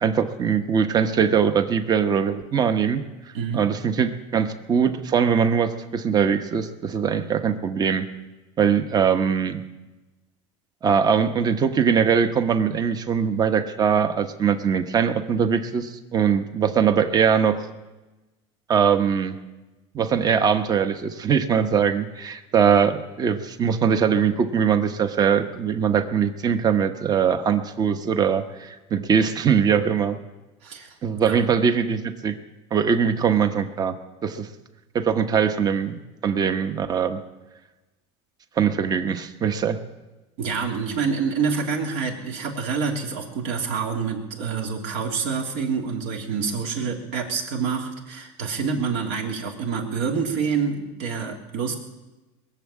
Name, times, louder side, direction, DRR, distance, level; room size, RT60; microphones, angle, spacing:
voice 1, 0.0-3.0 3.5-8.1 8.6-9.6 10.8-17.6 18.7-19.3 19.9-30.2 31.0-32.3 32.7-33.9 34.2-34.5 34.9-37.2 38.6-39.8, right 7 dB, 25° right, 9 dB, 1.1 m, -21 dB
voice 2, 30.6-30.9 31.2-31.4 40.4-51.8, right 5 dB, 70° right, 1 dB, 3.1 m, -27 dB
21.5 x 7.2 x 8.6 m, 1.1 s
supercardioid pair, 135°, 15 cm